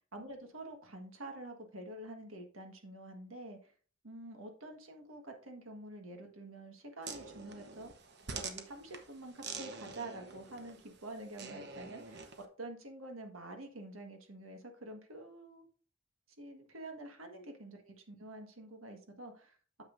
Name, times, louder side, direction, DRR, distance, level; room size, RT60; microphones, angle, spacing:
voice 1, 0.1-3.7 4.0-7.9 8.3-12.3 12.6-15.7 16.4-19.8, right 2 dB, 90° right, 4 dB, 1.6 m, -47 dB
sound 1, 7.0-12.4, right 5 dB, 55° right, 1.0 m, -47 dB
9.0 x 7.1 x 2.6 m, 0.40 s
head